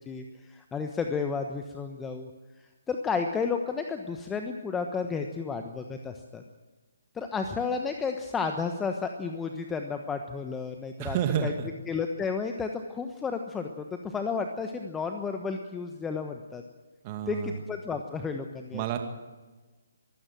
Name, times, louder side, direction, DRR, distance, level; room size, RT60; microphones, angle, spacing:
voice 1, 0.0-2.3 2.9-6.4 7.1-11.2 11.4-11.5 11.9-16.6 17.3-19.0, left 5 dB, 10° left, 5 dB, 1.2 m, -32 dB
voice 2, 11.0-11.7 17.0-17.6 18.7-19.0, right 9 dB, 30° right, 5 dB, 2.3 m, -29 dB
24.0 x 15.5 x 7.6 m, 1.3 s
figure-of-eight pair, 135°, 0 cm